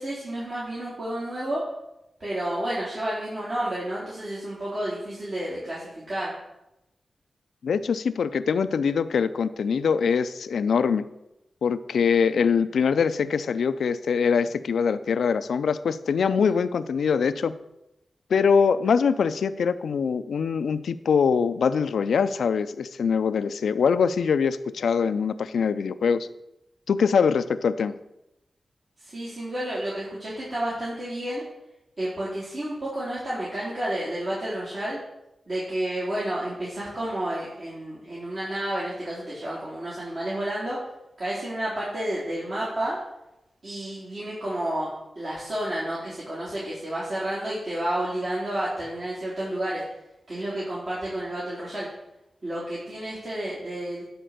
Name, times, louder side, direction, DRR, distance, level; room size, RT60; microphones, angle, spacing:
voice 1, 0.0-1.6 2.2-6.3 16.4-16.5 29.0-31.4 32.0-35.0 35.5-40.8 41.2-43.0 43.6-49.8 50.3-51.9 52.4-54.0, right 1 dB, 55° right, -8 dB, 3.5 m, -30 dB
voice 2, 7.6-11.0 11.6-17.6 18.3-26.3 26.9-27.9, left 6 dB, 90° left, 13 dB, 0.4 m, -23 dB
10.5 x 4.3 x 6.6 m, 0.89 s
cardioid pair, 50°, 0 cm